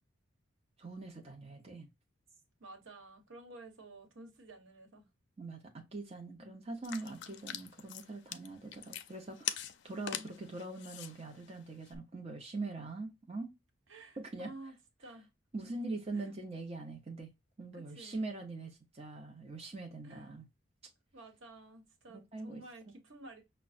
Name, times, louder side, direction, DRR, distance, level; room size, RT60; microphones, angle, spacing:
voice 1, 0.8-1.9 5.4-9.6 9.8-13.5 14.2-14.5 15.5-17.3 17.6-20.5 22.1-22.6, right 3 dB, 30° right, 0.8 m, -42 dB
voice 2, 2.6-5.1 6.4-6.5 6.8-7.4 10.1-10.6 13.9-15.3 15.8-16.3 17.7-18.5 20.0-20.3 21.1-23.4, right 2 dB, 75° right, 1.2 m, -53 dB
sound 1, 6.8-12.0, left 10 dB, 65° left, 0.4 m, -44 dB
5.9 x 2.2 x 2.4 m
head